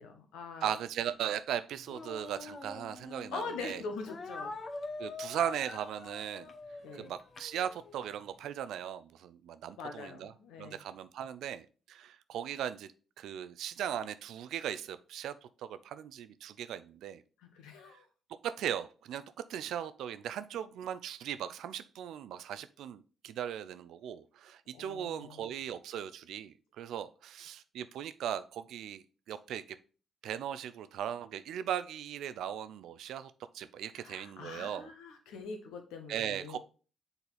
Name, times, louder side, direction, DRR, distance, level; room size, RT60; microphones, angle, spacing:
voice 1, 0.0-0.7 3.3-4.5 6.8-7.1 9.8-10.8 17.5-18.0 24.7-25.4 33.9-36.6, left 4 dB, 75° left, 5 dB, 1.1 m, -43 dB
voice 2, 0.6-3.8 5.0-6.5 6.9-10.3 10.6-12.9 13.2-15.4 15.6-17.2 18.4-19.2 19.5-29.8 30.2-34.9 36.1-36.6, right 10 dB, 70° right, 13 dB, 0.4 m, -38 dB
Speech, 1.9-3.4 4.1-8.1, left 3 dB, 45° left, 1.0 m, -45 dB
6.9 x 4.0 x 4.1 m, 0.37 s
hypercardioid pair, 40°, 0 cm